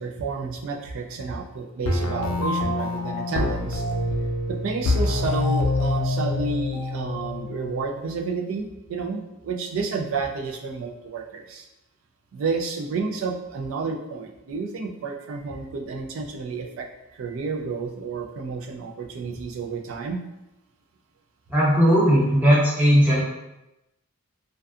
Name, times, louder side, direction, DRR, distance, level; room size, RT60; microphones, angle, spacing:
voice 1, 0.0-3.9 4.5-11.7 12.3-20.2, right 4 dB, 70° right, 3 dB, 0.3 m, -30 dB
sound 1, 1.9-7.9, left 2 dB, 85° left, 0.4 m, -26 dB
voice 2, 21.5-23.2, equal, 5° right, -8 dB, 0.6 m, -17 dB
2.5 x 2.2 x 2.3 m, 0.94 s
head